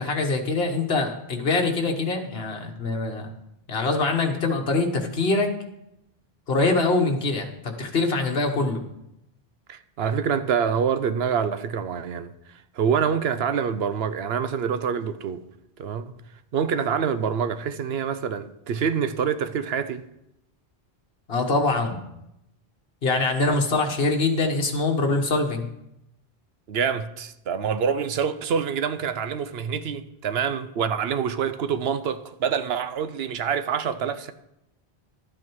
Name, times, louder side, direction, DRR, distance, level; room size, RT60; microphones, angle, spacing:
voice 1, 0.0-3.3 3.7-5.5 6.5-8.8 21.3-22.0 23.0-25.7, left 3 dB, 70° left, 1.6 m, -24 dB
voice 2, 9.7-12.3 12.8-15.4 15.8-16.1 16.5-20.0 23.4-23.6 26.7-34.3, right 7 dB, 75° right, 0.9 m, -26 dB
12.5 x 8.5 x 4.7 m
omnidirectional pair, 1.1 m